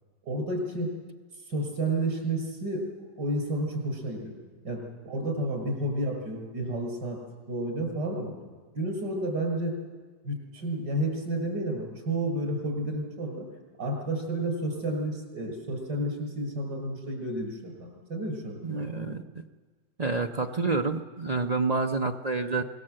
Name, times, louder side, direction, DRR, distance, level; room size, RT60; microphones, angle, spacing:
voice 1, 0.2-0.9 1.5-4.3 4.6-7.2 7.5-8.3 8.7-9.7 10.2-13.5 13.8-19.2, right 1 dB, 70° right, 1 dB, 6.3 m, -31 dB
voice 2, 18.6-19.2 20.0-22.6, right 3 dB, 50° right, 4 dB, 0.4 m, -28 dB
25.5 x 19.5 x 7.7 m, 1.4 s
omnidirectional pair, 1.9 m